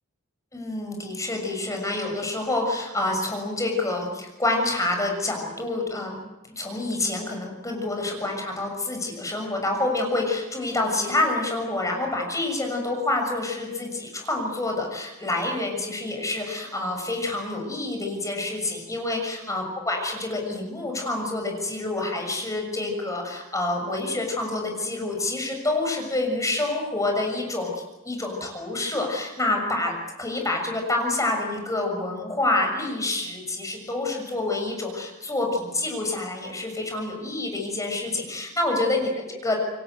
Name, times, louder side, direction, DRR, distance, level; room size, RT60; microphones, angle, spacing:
voice 1, 0.5-6.2 6.6-39.6, left 2 dB, 15° left, 2 dB, 6.6 m, -27 dB
28.0 x 23.5 x 8.1 m, 1.1 s
head